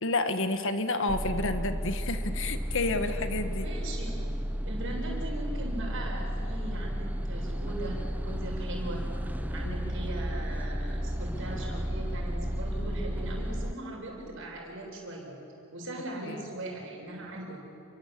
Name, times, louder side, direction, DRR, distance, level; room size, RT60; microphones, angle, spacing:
voice 1, 0.0-3.7 9.6-9.8 16.2-16.5, left 2 dB, 60° left, 8 dB, 1.6 m, -30 dB
sound 1, 1.1-13.7, equal, 5° right, 0.9 m, -33 dB
voice 2, 3.6-4.1 4.6-9.0 9.5-15.3 15.7-17.6, right 2 dB, 60° right, -1 dB, 7.8 m, -39 dB
29.5 x 23.5 x 8.6 m, 2.8 s
head